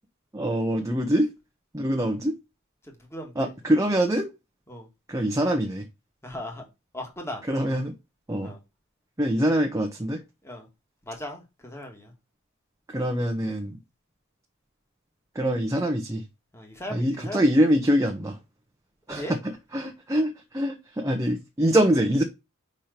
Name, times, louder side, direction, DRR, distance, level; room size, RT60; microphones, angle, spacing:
voice 1, 0.3-1.3 1.7-2.3 3.4-4.3 5.1-5.8 7.5-7.9 8.3-8.5 9.2-10.2 12.9-13.8 15.3-16.2 16.9-18.4 19.1-19.2 19.7-22.2, equal, 15° right, 0.7 m, -24 dB
voice 2, 2.8-3.5 4.7-4.9 6.2-6.7 6.9-7.4 8.4-8.6 10.4-10.7 11.1-12.1 16.5-17.5 19.1-19.4, left 1 dB, 10° left, 1.6 m, -38 dB
5.3 x 4.4 x 5.1 m
head